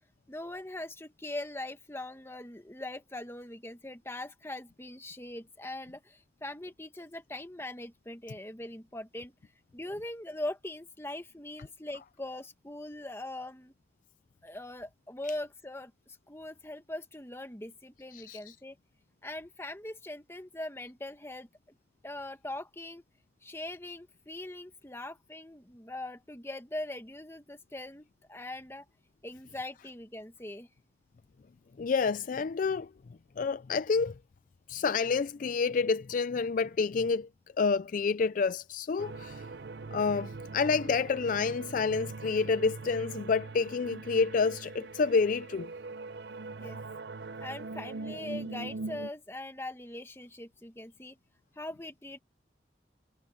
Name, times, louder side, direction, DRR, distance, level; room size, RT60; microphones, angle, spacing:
voice 1, 0.3-9.3 9.7-13.7 14.4-18.8 19.2-21.7 22.0-23.0 23.4-28.8 29.2-30.7 46.6-46.8 47.4-51.2 51.5-52.2, left 1 dB, 15° left, 1.5 m, -41 dB
voice 2, 18.1-18.5 31.8-32.9 33.4-34.1 34.7-37.3 37.6-39.5 39.9-45.7, left 4 dB, 45° left, 0.4 m, -29 dB
sound 1, 39.0-49.1, right 3 dB, 70° right, 0.6 m, -42 dB
head